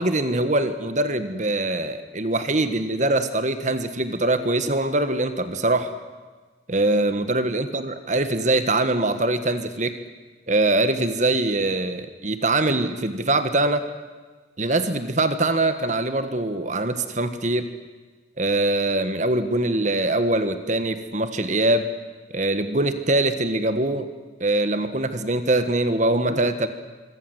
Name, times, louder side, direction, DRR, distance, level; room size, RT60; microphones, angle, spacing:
voice 1, 0.0-5.9 6.7-9.9 10.5-13.9 14.6-17.6 18.4-21.9 22.3-24.1 24.4-26.7, right 2 dB, 45° right, 9 dB, 1.5 m, -23 dB
26.5 x 24.0 x 8.0 m, 1.4 s
head